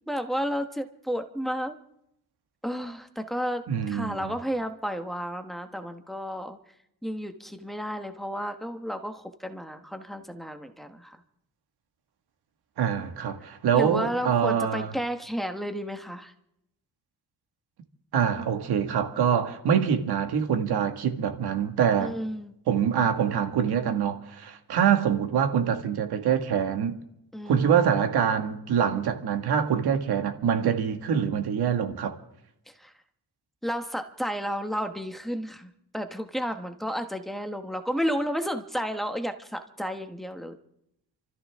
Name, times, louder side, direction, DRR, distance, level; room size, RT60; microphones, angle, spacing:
voice 1, 0.1-1.7 2.6-6.6 7.0-11.2 13.7-16.3 22.0-22.5 27.3-27.7 32.7-32.9 33.6-40.5, equal, ahead, 1.1 m, -32 dB
voice 2, 3.7-4.3 12.8-14.9 18.1-22.1 22.7-27.0 27.5-32.1, right 8 dB, 85° right, 2.0 m, -25 dB
29.0 x 13.5 x 3.6 m
wide cardioid pair, 165°, 38 cm